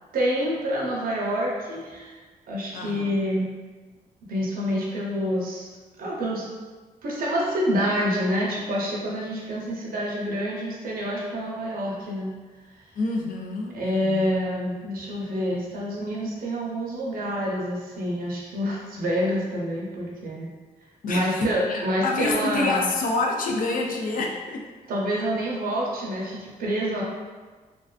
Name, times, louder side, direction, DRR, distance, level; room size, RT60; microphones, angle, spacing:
voice 1, 0.1-2.2 2.5-3.5 4.3-5.7 6.0-6.5 7.0-12.3 13.7-20.5 21.1-22.9 24.9-27.0, equal, 75° right, -4 dB, 0.6 m, -27 dB
voice 2, 2.7-3.0 13.0-14.3 21.0-24.7, left 3 dB, 65° left, 1 dB, 0.4 m, -27 dB
2.4 x 2.2 x 2.3 m, 1.4 s
cardioid pair, 75°, 15 cm